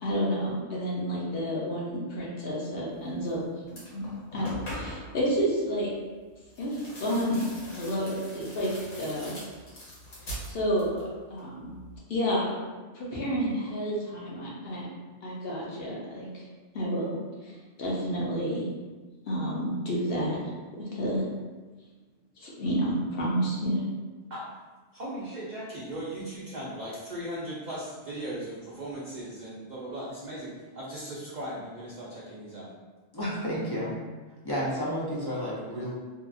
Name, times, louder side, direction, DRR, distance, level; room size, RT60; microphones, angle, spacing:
voice 1, 0.0-3.4 3.9-4.0 4.3-5.9 6.6-7.4 7.7-9.3 10.5-11.0 11.3-11.7 12.1-12.5 12.9-14.8 15.2-16.4 16.7-17.2 17.4-18.7 19.3-20.4 20.8-21.2 22.4-23.8, equal, 60° left, -5 dB, 0.8 m, -30 dB
sound 1, 3.2-3.4 3.7-5.2 6.5-11.1 11.4-12.0, equal, 90° left, 1.3 m, -42 dB
voice 2, 24.9-32.7, right 1 dB, 60° right, -7 dB, 0.5 m, -38 dB
voice 3, 33.1-34.0 34.4-35.9, equal, 40° left, -7 dB, 0.3 m, -31 dB
2.7 x 2.3 x 2.4 m, 1.3 s
omnidirectional pair, 1.2 m